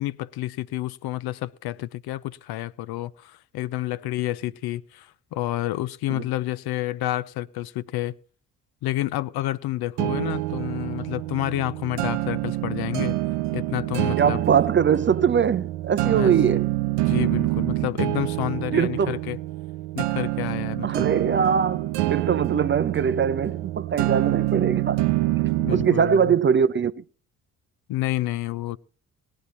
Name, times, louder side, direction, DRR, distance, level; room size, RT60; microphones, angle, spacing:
voice 1, 0.0-8.2 8.8-13.2 13.5-14.4 16.0-16.3 17.1-19.4 19.9-21.1 25.6-26.3 27.9-28.8, left 15 dB, 60° left, 0.6 m, -29 dB
sound 1, 10.0-26.0, right 18 dB, 70° right, 0.7 m, -26 dB
voice 2, 14.2-16.7 18.7-19.2 20.8-25.1 25.4-27.0, right 7 dB, 30° right, 0.5 m, -22 dB
18.5 x 10.0 x 4.2 m
hypercardioid pair, 45°, 43 cm